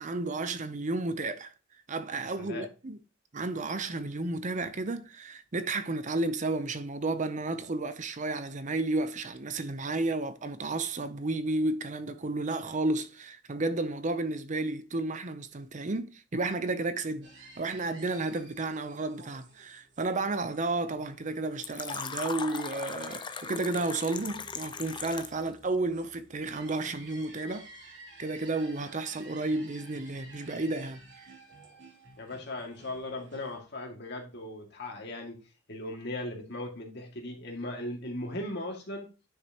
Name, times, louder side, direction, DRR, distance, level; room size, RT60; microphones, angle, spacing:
voice 1, 0.0-1.5 1.9-3.0 3.3-31.3, right 2 dB, 40° right, 0.7 m, -32 dB
voice 2, 2.4-2.7 32.2-35.4 35.7-39.1, left 1 dB, 60° left, 2.3 m, -38 dB
sound 1, 17.2-33.6, right 2 dB, 65° right, 3.1 m, -53 dB
Fill (with liquid), 21.6-25.5, left 5 dB, 25° left, 0.6 m, -38 dB
10.0 x 6.2 x 3.0 m
head